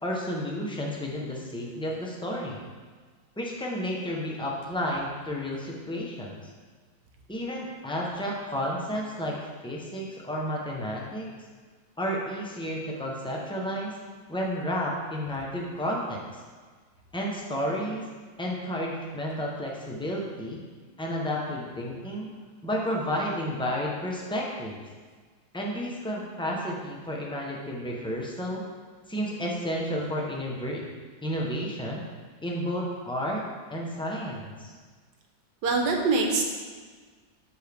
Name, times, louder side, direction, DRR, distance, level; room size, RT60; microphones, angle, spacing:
voice 1, 0.0-2.6 3.4-6.4 7.3-9.4 9.6-11.3 12.0-13.9 14.3-16.2 17.1-18.0 18.4-20.6 21.0-22.3 22.6-24.8 25.5-28.6 29.1-30.8 31.2-32.0 32.4-33.4 33.7-34.7, equal, 5° left, -2 dB, 0.5 m, -31 dB
voice 2, 35.6-36.4, right 3 dB, 65° right, 2 dB, 1.5 m, -23 dB
12.5 x 4.6 x 3.5 m, 1.5 s
omnidirectional pair, 2.1 m